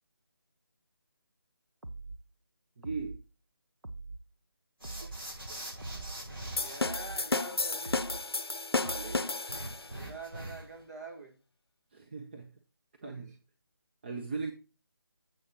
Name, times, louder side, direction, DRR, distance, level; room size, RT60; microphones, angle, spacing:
sound 1, 1.8-2.2 2.8-3.2 3.8-4.2 4.8-5.2 5.8-6.2 6.8-7.2 7.8-8.2 8.8-9.2, right 3 dB, 85° right, 1.0 m, -43 dB
voice 1, 2.8-3.2 8.7-9.3 11.9-12.5 13.0-13.3 14.0-14.5, right 4 dB, 25° right, 0.6 m, -39 dB
sound 2, 4.8-6.8 9.5-10.8, right 1 dB, 65° right, 5.2 m, -42 dB
sound 3, 6.6-10.0, left 3 dB, 80° left, 0.6 m, -32 dB
voice 2, 6.6-8.0 10.0-11.4 13.0-13.3, right 2 dB, 45° right, 1.5 m, -45 dB
8.5 x 7.8 x 2.9 m
figure-of-eight pair, 155°, 13 cm